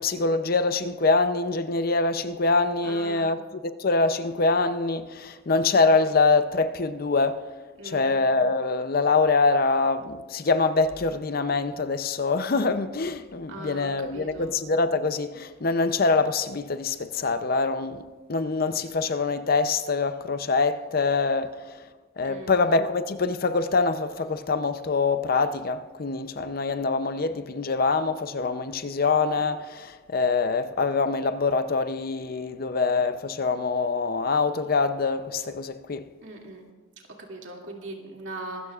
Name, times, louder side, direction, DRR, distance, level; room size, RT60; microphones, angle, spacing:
voice 1, 0.0-7.4 7.8-18.0 18.3-21.5 22.2-36.1, left 3 dB, 50° left, 0.6 m, -24 dB
voice 2, 2.8-3.3 7.8-8.1 13.5-14.5 22.2-22.6 36.2-36.6 37.2-38.7, right 2 dB, 70° right, 2.4 m, -40 dB
24.0 x 13.5 x 2.4 m
head